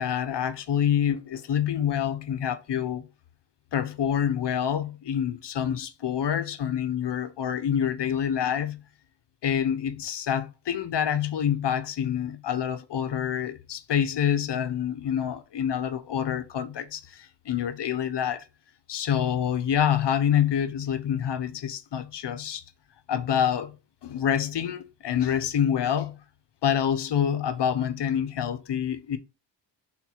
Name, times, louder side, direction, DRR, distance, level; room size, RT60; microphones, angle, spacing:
voice 1, 0.0-3.1 3.7-8.8 9.4-18.4 18.9-22.6 23.1-23.8 24.0-26.2 26.6-29.2, left 9 dB, 60° left, 0.9 m, -27 dB
4.5 x 4.1 x 5.6 m
cardioid pair, 85°, 46 cm